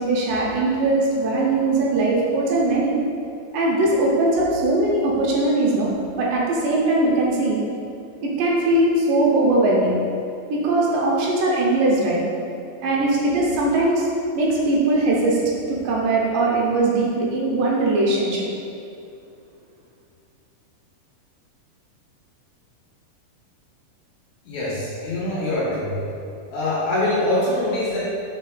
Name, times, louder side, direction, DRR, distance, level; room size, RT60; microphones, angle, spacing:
voice 1, 0.0-3.0 3.5-5.9 6.2-7.6 8.2-10.0 10.5-12.2 12.8-14.1 14.3-15.4 15.7-18.4, right 2 dB, 80° right, -3 dB, 2.2 m, -20 dB
voice 2, 24.4-26.0 26.5-28.0, left 1 dB, 70° left, -8 dB, 2.0 m, -24 dB
5.6 x 4.0 x 2.2 m, 2.5 s
omnidirectional pair, 3.9 m